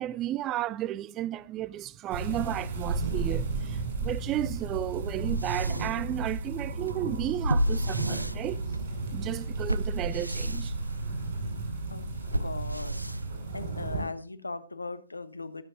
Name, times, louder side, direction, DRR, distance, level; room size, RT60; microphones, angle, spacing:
voice 1, 0.0-8.6 9.1-10.7, right 13 dB, 20° right, 0.4 m, -33 dB
sound 1, 2.1-14.0, right 3 dB, 50° right, 5.8 m, -34 dB
sound 2, 5.0-13.9, right 1 dB, 85° right, 0.4 m, -33 dB
voice 2, 11.6-12.1 12.4-13.1 13.5-15.6, left 3 dB, 80° left, 1.2 m, -39 dB
22.0 x 7.4 x 2.7 m
figure-of-eight pair, 120°, 0 cm